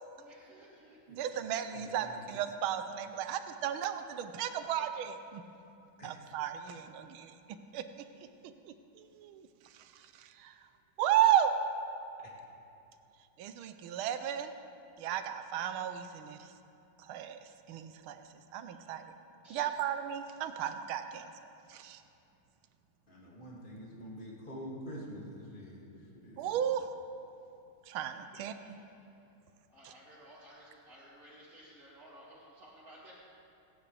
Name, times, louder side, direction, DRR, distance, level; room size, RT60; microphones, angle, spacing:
voice 1, 0.2-1.9 18.6-18.9 19.4-19.7 28.3-28.9 29.7-33.1, right 1 dB, 45° right, -11 dB, 3.1 m, -56 dB
voice 2, 1.1-5.4 6.0-7.8 8.6-10.7 11.0-11.5 13.4-14.5 15.0-16.5 17.0-19.1 19.5-22.0 26.4-26.9 27.9-28.8 29.8-29.9, right 10 dB, 85° right, 9 dB, 1.5 m, -34 dB
voice 3, 1.7-2.3 6.0-6.1 23.1-25.8 26.1-26.6, equal, 25° left, -5 dB, 2.5 m, -46 dB
28.0 x 9.7 x 3.4 m, 2.7 s
omnidirectional pair, 2.2 m